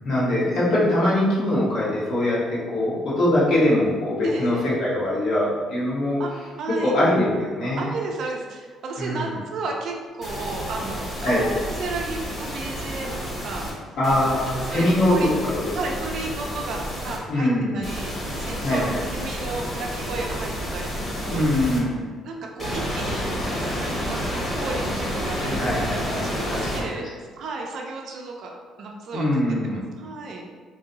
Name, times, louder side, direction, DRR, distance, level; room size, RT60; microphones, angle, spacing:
voice 1, 0.0-6.2 6.8-7.9 9.0-9.3 11.2-11.5 14.0-15.7 17.3-17.8 18.6-19.0 21.3-22.0 25.4-26.8 29.1-29.8, left 1 dB, 55° left, -7 dB, 1.3 m, -22 dB
voice 2, 4.2-4.6 6.2-6.3 6.6-6.9 7.8-13.7 14.6-15.3 15.7-21.4 22.2-23.3 23.6-23.7 24.1-30.5, right 3 dB, 55° right, 1 dB, 0.5 m, -33 dB
sound 1, 10.2-13.7 14.0-17.2 17.8-21.8 22.6-26.8, equal, 20° left, 1.1 m, -30 dB
3.0 x 2.8 x 3.9 m, 1.5 s
cardioid pair, 150°, 0 cm